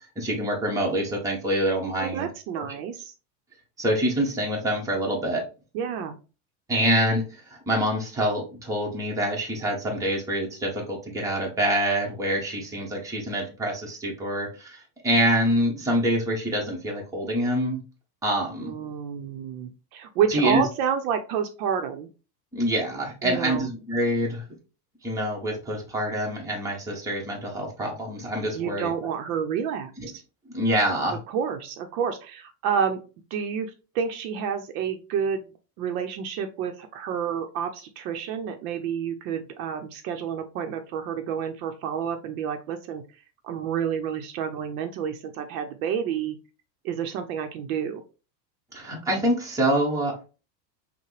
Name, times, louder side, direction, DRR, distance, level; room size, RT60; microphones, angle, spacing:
voice 1, 0.2-2.3 2.6-2.7 3.8-5.4 6.7-7.2 7.5-17.8 18.2-18.7 20.3-20.6 22.5-24.4 25.0-28.9 30.0-30.1 30.5-31.2 48.7-50.2, right 1 dB, 5° right, -2 dB, 0.9 m, -26 dB
voice 2, 2.0-3.1 5.7-6.2 18.6-22.1 23.2-23.7 28.5-29.9 31.1-33.0 33.3-35.5 35.8-43.0 43.4-46.4 46.8-48.0, right 7 dB, 60° right, 7 dB, 0.7 m, -29 dB
5.6 x 2.2 x 3.2 m, 0.33 s
supercardioid pair, 150°, 48 cm